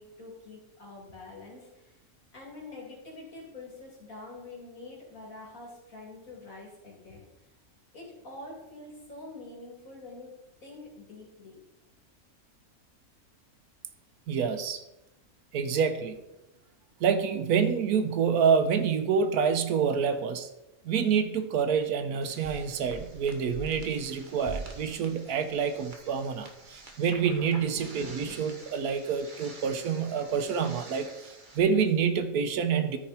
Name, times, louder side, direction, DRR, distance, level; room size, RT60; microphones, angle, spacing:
voice 1, 0.0-2.0 2.3-7.2 7.9-10.3 10.6-11.6, left 2 dB, 65° left, -3 dB, 3.3 m, -46 dB
voice 2, 14.3-14.8 15.5-16.2 17.0-20.5 20.8-31.1 31.5-33.0, right 6 dB, 85° right, 9 dB, 1.3 m, -27 dB
sound 1, 22.2-31.6, right 3 dB, 35° right, 1.4 m, -45 dB
13.5 x 5.2 x 4.3 m, 0.93 s
omnidirectional pair, 1.5 m